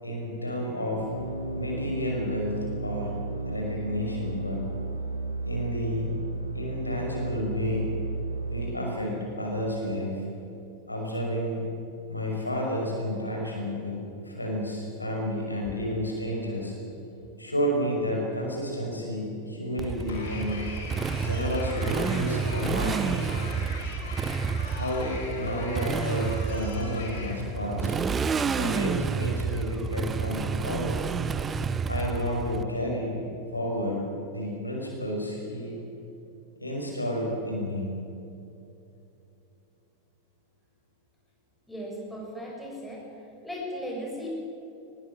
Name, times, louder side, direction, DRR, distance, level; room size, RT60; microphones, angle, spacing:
voice 1, 0.0-1.1 1.5-3.2 3.5-4.6 5.5-6.1 6.5-8.0 8.4-10.2 10.9-11.6 12.1-14.0 14.2-16.7 17.4-20.7 21.2-23.2 24.7-28.0 28.6-31.0 31.9-33.2 33.5-35.8 36.6-37.9, equal, 85° left, -1 dB, 5.9 m, -31 dB
sound 1, 0.9-8.7, right 2 dB, 85° right, 1.9 m, -34 dB
Motorcycle, 19.8-32.6, right 5 dB, 20° right, 1.1 m, -30 dB
sound 2, 20.1-27.4, left 3 dB, 60° left, 4.7 m, -41 dB
voice 2, 41.7-43.0 43.4-44.3, equal, 5° left, -3 dB, 7.7 m, -36 dB
22.5 x 20.5 x 8.0 m, 2.8 s
figure-of-eight pair, 90°, 0 cm